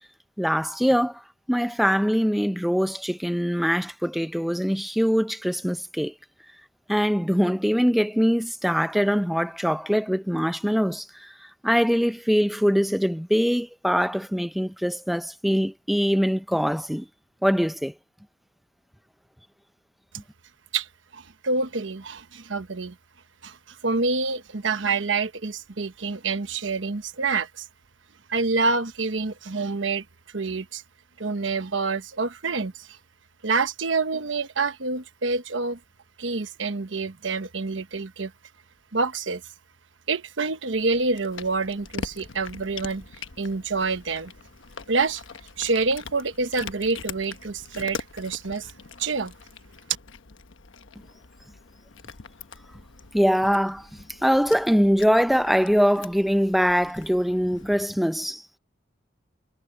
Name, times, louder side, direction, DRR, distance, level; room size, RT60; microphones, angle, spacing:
voice 1, 0.4-1.2 1.5-6.1 6.9-17.1 17.4-17.9 53.1-58.4, equal, ahead, 0.6 m, -23 dB
voice 2, 21.1-22.9 23.4-27.6 28.3-30.0 30.3-30.8 31.2-32.9 33.4-35.8 36.2-38.3 38.9-39.4 40.1-43.0 43.4-44.3 44.9-45.2 45.6-48.7 49.0-49.3, right 4 dB, 75° right, 1.1 m, -27 dB
Cat, 40.7-57.8, left 5 dB, 80° left, 1.2 m, -43 dB
head